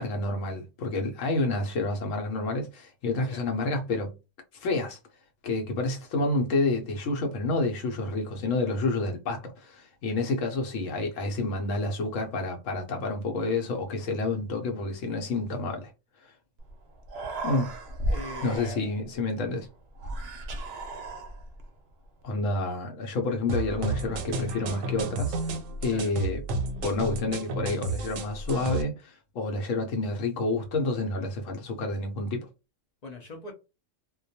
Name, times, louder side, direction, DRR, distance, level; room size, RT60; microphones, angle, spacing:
voice 1, 0.0-4.1 4.5-5.0 5.4-15.9 16.2-16.3 17.4-17.7 18.4-19.7 22.2-25.3 25.8-26.4 26.8-32.5, left 2 dB, 80° left, 0.9 m, -29 dB
Human voice, 16.6-16.7 17.0-19.1 20.0-21.6, right 1 dB, 65° right, 0.7 m, -34 dB
voice 2, 18.1-18.8 25.9-26.1 33.0-33.5, left 2 dB, 55° left, 0.5 m, -41 dB
sound 1, 23.5-28.8, right 2 dB, 90° right, 1.0 m, -32 dB
2.2 x 2.2 x 2.6 m
omnidirectional pair, 1.3 m